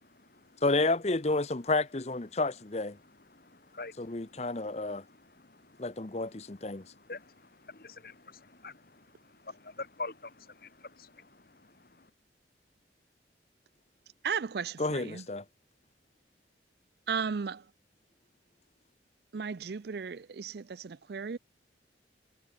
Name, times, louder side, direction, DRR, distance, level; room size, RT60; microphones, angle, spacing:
voice 1, 0.0-0.6 3.0-12.1, left 3 dB, 50° left, 1.9 m, -47 dB
voice 2, 0.6-3.0 4.0-5.0 5.8-6.8 14.8-15.4, left 2 dB, 35° left, 0.9 m, -30 dB
voice 3, 14.2-15.2 17.1-17.6 19.3-21.4, right 6 dB, 60° right, 0.5 m, -35 dB
head